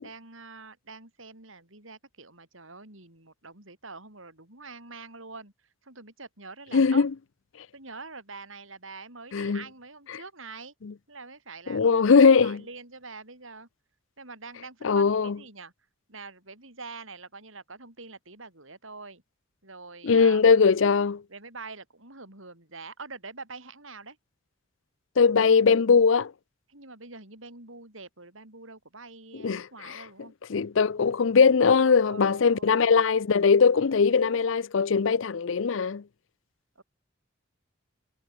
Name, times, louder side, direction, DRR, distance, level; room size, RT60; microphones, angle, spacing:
voice 1, 0.0-5.5 5.8-7.1 7.7-10.7 11.1-13.7 14.2-15.7 16.1-19.2 19.6-20.5 21.3-24.2 26.7-30.3 31.8-32.9 36.8-36.9, right 3 dB, 70° right, 7.7 m, -45 dB
voice 2, 6.7-7.1 9.3-9.6 11.7-12.6 14.8-15.3 20.0-21.2 25.2-26.3 29.4-30.0 30.5-36.0, left 5 dB, 65° left, 0.5 m, -20 dB
head